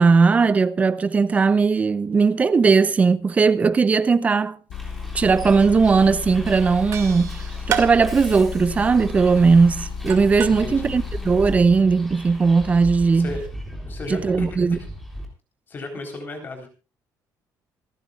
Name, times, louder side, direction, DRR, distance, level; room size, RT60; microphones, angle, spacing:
voice 1, 0.0-4.6 5.1-13.3 14.1-14.8, right 4 dB, 20° right, 0.7 m, -18 dB
Motor vehicle (road) / Engine, 4.7-11.6, left 5 dB, 65° left, 2.1 m, -33 dB
Bus, 4.7-15.2, equal, ahead, 3.5 m, -38 dB
sound 1, 5.9-6.0 6.2-6.6 6.9-10.6, right 8 dB, 45° right, 2.2 m, -31 dB
voice 2, 10.6-11.0 13.1-13.4 13.9-14.9 15.7-16.7, left 2 dB, 30° left, 3.9 m, -34 dB
27.5 x 10.5 x 2.4 m
cardioid pair, 180°, 7 cm